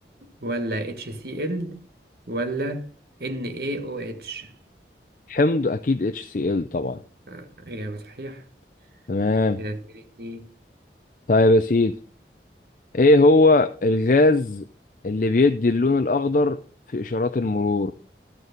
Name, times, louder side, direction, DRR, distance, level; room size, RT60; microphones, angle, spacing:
voice 1, 0.4-1.8 2.3-2.9 3.2-4.5 7.3-8.4 9.6-10.5, right 1 dB, 60° right, 1.4 m, -31 dB
voice 2, 5.3-7.0 9.1-9.6 11.3-11.9 12.9-14.7 15.0-16.6 16.9-17.9, left 2 dB, 45° left, 0.5 m, -19 dB
12.5 x 6.8 x 5.1 m
head